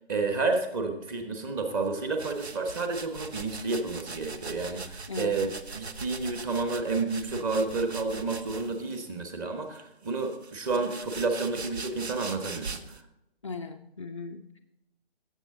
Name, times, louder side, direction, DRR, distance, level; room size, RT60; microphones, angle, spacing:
voice 1, 0.1-12.8, right 3 dB, 20° right, 5 dB, 1.2 m, -30 dB
sound 1, 2.2-9.0 9.7-13.0, right 4 dB, 80° right, 1.0 m, -41 dB
voice 2, 13.4-14.6, left 4 dB, 30° left, 2 dB, 0.4 m, -38 dB
16.5 x 7.4 x 3.8 m, 0.89 s
figure-of-eight pair, 145°, 32 cm